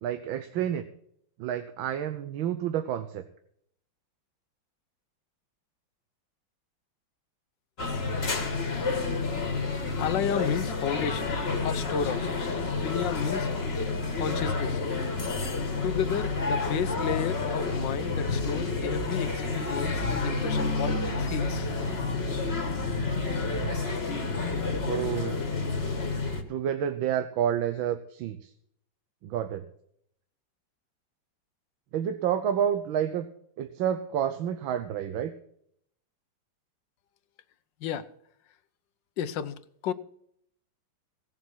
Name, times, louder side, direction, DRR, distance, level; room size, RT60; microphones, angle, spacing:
voice 1, 0.0-0.8 1.4-3.2 23.4-23.8 24.8-25.4 26.5-28.5 29.2-29.6 31.9-33.3 33.6-35.3, right 9 dB, 85° right, 9 dB, 1.6 m, -29 dB
sound 1, 7.8-26.4, left 3 dB, 35° left, 1.7 m, -29 dB
voice 2, 10.0-11.3 11.6-12.3 12.8-13.5 14.2-14.8 15.8-21.7 37.8-38.0 39.2-39.5 39.8-39.9, left 8 dB, 70° left, 13 dB, 1.4 m, -32 dB
17.5 x 7.2 x 6.2 m, 0.69 s
omnidirectional pair, 2.2 m